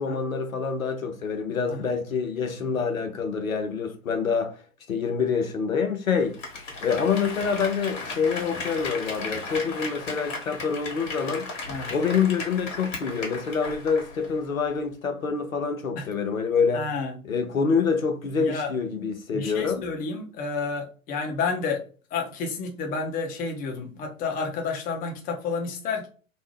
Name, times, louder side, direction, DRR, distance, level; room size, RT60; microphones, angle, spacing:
voice 1, 0.0-4.6 4.9-6.4 6.8-11.5 11.9-16.9 17.2-19.8, left 5 dB, 90° left, 0.6 m, -26 dB
Applause, 6.2-14.4 14.7-14.8, left 3 dB, 65° left, 1.3 m, -36 dB
voice 2, 16.7-17.2 18.4-18.7 19.3-21.8 22.1-26.1, left 4 dB, 20° left, 0.6 m, -30 dB
2.6 x 2.1 x 3.1 m
figure-of-eight pair, 100°, 40 cm